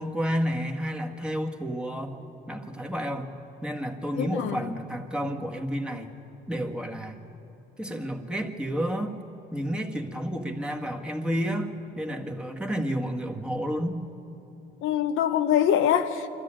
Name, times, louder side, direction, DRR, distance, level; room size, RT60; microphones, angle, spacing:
voice 1, 0.0-6.1 6.5-7.2 7.8-9.2 9.5-14.0, equal, 5° right, 1 dB, 1.8 m, -31 dB
voice 2, 4.2-4.7 14.8-16.3, left 9 dB, 85° left, 7 dB, 1.0 m, -24 dB
25.0 x 13.5 x 8.9 m, 2.9 s
cardioid pair, 90°, 20 cm